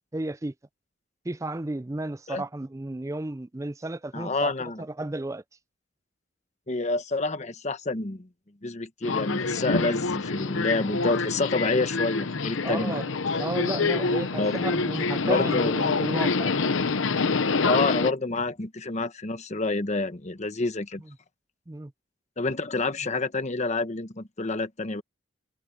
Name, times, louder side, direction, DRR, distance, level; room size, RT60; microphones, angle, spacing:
voice 1, 0.1-0.5 1.2-5.4 12.6-13.1 13.4-16.5 21.1-21.2 21.7-21.9, right 2 dB, 15° right, 0.4 m, -33 dB
voice 2, 4.1-4.8 6.7-8.3 8.6-13.0 14.4-14.6 15.2-15.8 17.6-21.0 22.4-25.0, left 3 dB, 35° left, 1.1 m, -28 dB
Subway metro underground, 9.0-18.1, left 4 dB, 80° left, 0.9 m, -26 dB
head